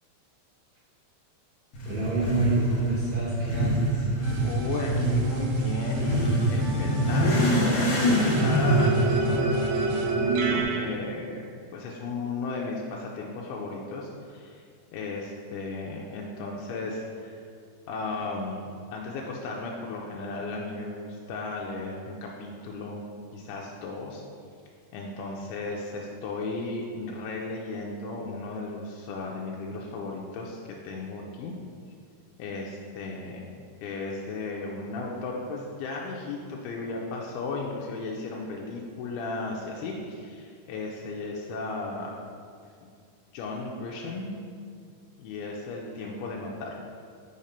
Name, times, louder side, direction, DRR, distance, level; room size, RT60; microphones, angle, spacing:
Motorcycle / Accelerating revving vroom, 1.7-10.6, equal, 70° left, 1.7 m, -26 dB
voice 1, 1.9-4.0, right 1 dB, 70° right, -8 dB, 1.8 m, -29 dB
sound 1, 4.2-10.9, right 3 dB, 85° right, 1.8 m, -29 dB
voice 2, 4.4-14.7 14.9-17.4 17.9-23.0 23.3-24.2 24.9-31.5 32.4-33.5 33.8-42.1 43.3-44.3 45.2-46.8, left 3 dB, 90° left, -2 dB, 2.5 m, -35 dB
5.7 x 4.2 x 5.1 m, 2.2 s
omnidirectional pair, 4.4 m